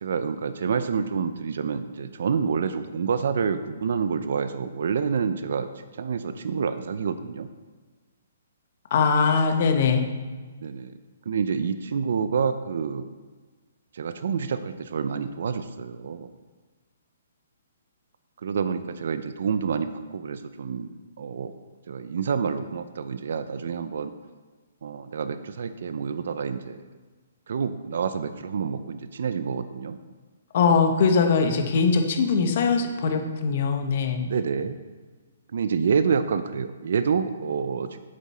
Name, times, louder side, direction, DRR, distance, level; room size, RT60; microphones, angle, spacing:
voice 1, 0.0-5.7 6.0-7.5 10.6-11.0 11.3-13.1 13.9-16.3 18.4-20.9 21.2-21.5 21.9-24.1 24.8-26.8 27.5-30.0 34.2-34.8 35.5-38.0, right 6 dB, 55° right, 10 dB, 0.5 m, -28 dB
voice 2, 8.9-10.1 30.5-34.2, left 5 dB, 40° left, 5 dB, 1.1 m, -21 dB
8.6 x 7.3 x 4.3 m, 1.4 s
hypercardioid pair, 175°, 0 cm